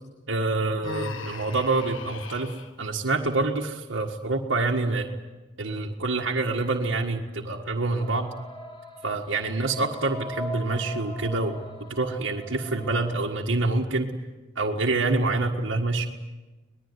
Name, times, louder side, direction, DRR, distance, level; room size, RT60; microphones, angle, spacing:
voice 1, 0.3-2.5 2.8-5.1 5.6-8.3 9.0-11.6 11.9-14.1 14.5-16.1, right 3 dB, 80° right, -1 dB, 1.7 m, -26 dB
Human voice, 0.8-2.7, left 4 dB, 90° left, 1.7 m, -38 dB
sound 1, 8.0-13.1, equal, 25° left, 4.3 m, -40 dB
24.0 x 20.5 x 9.7 m, 1.2 s
head